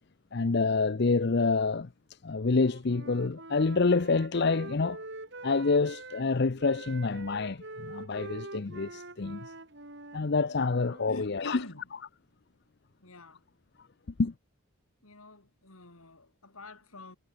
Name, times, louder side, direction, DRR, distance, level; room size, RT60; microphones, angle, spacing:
voice 1, 0.3-1.9 2.2-5.0 5.4-9.5 10.1-11.6 14.2-14.3, left 4 dB, 50° left, 0.6 m, -27 dB
Wind instrument woodwind instrument, 2.5-6.3 6.6-11.1, right 2 dB, 55° right, 3.9 m, -45 dB
voice 2, 11.1-11.9 13.0-13.5 15.0-17.2, left 2 dB, 80° left, 3.9 m, -46 dB
head